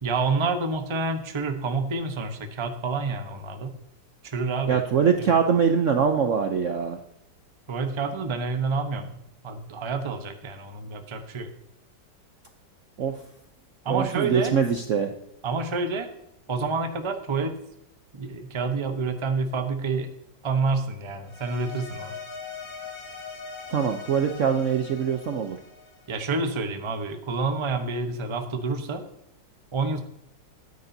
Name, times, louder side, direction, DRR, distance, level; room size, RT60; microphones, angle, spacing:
voice 1, 0.0-3.8 4.2-4.8 5.2-5.3 7.7-9.2 9.4-11.5 13.8-14.5 15.4-16.1 16.5-17.6 18.1-20.1 20.4-22.2 26.1-29.0 29.7-30.0, right 4 dB, 25° right, 6 dB, 0.7 m, -28 dB
voice 2, 4.7-7.0 13.0-13.1 13.9-15.1 23.7-25.6, right 6 dB, 60° right, 5 dB, 0.8 m, -23 dB
sound 1, 21.3-26.6, left 5 dB, 75° left, 3.4 m, -41 dB
13.5 x 9.6 x 2.7 m, 0.81 s
omnidirectional pair, 1.9 m